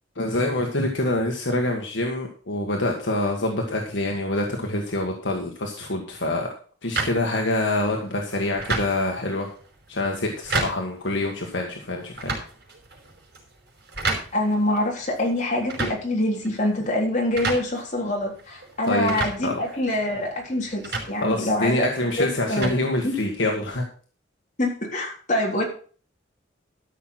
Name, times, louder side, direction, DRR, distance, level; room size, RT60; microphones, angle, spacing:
voice 1, 0.1-6.5 6.8-9.5 9.9-12.3 18.8-19.1 19.4-19.6 21.2-23.8, left 1 dB, 70° left, 1 dB, 1.7 m, -26 dB
sound 1, 7.0-23.6, right 3 dB, 60° right, 5.2 m, -34 dB
voice 2, 14.3-21.9 22.2-22.7 23.0-23.2 24.6-25.6, left 1 dB, 40° left, -1 dB, 3.8 m, -25 dB
13.5 x 6.3 x 5.9 m, 0.42 s
head